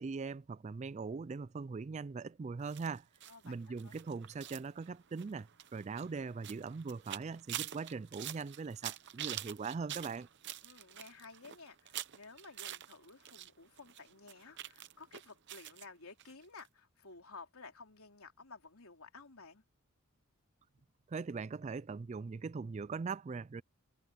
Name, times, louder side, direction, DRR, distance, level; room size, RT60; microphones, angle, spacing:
voice 1, 0.0-3.1 3.4-10.3 21.1-23.6, right 4 dB, 30° right, 0.3 m, -41 dB
sound 1, 2.7-13.5 13.8-15.9 16.2-16.3 16.6-16.7, right 12 dB, 50° right, 0.8 m, -46 dB
voice 2, 10.6-19.6, left 4 dB, 75° left, 3.3 m, -54 dB
head